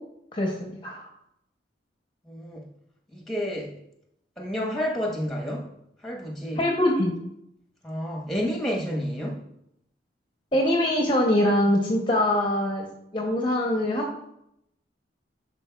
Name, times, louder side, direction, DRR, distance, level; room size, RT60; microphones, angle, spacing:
voice 1, 0.3-1.1 6.5-7.1 10.5-12.9 13.1-14.1, left 1 dB, 25° left, 0 dB, 0.7 m, -23 dB
voice 2, 2.3-2.7 3.1-3.7 4.4-5.7 6.0-6.6 7.8-9.4, equal, ahead, 0 dB, 1.1 m, -30 dB
11.0 x 4.2 x 2.3 m, 0.77 s
head